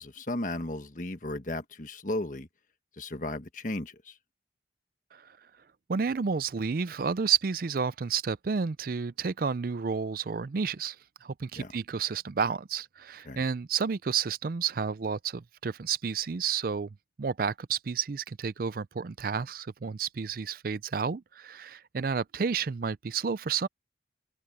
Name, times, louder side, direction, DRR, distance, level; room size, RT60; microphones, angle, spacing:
voice 1, 0.0-2.5 3.0-4.1 11.6-11.7 13.3-13.4, left 1 dB, 45° left, 1.4 m, -35 dB
voice 2, 5.9-11.0 11.2-16.9 17.2-23.7, right 6 dB, 50° right, 0.4 m, -31 dB
head